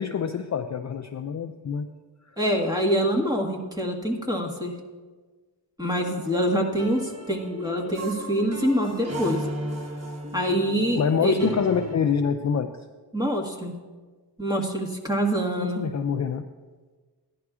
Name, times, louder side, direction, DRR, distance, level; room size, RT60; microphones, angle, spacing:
voice 1, 0.0-1.9 11.0-12.7 15.6-16.5, left 7 dB, 40° left, 6 dB, 0.4 m, -26 dB
voice 2, 2.4-4.7 5.8-9.4 10.3-11.5 13.1-13.7 14.4-15.8, equal, 10° right, 0 dB, 1.5 m, -25 dB
sound 1, 5.9-12.0, right 1 dB, 35° right, 1.1 m, -36 dB
15.5 x 10.5 x 2.4 m, 1.4 s
wide cardioid pair, 95°, 44 cm